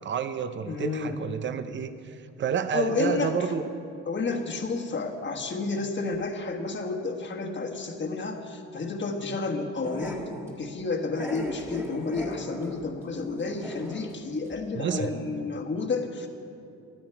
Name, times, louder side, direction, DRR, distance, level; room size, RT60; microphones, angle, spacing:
voice 1, 0.0-3.7 14.7-15.1, right 7 dB, 40° right, 11 dB, 0.7 m, -30 dB
voice 2, 0.6-1.2 2.7-3.3 4.1-10.2 10.6-16.3, left 3 dB, 40° left, 2 dB, 1.4 m, -31 dB
Growling, 9.8-10.6 11.2-14.2 14.5-14.6 14.9-15.0, equal, 10° right, 1.7 m, -38 dB
13.5 x 12.5 x 4.6 m, 2.5 s
cardioid pair, 90°, 30 cm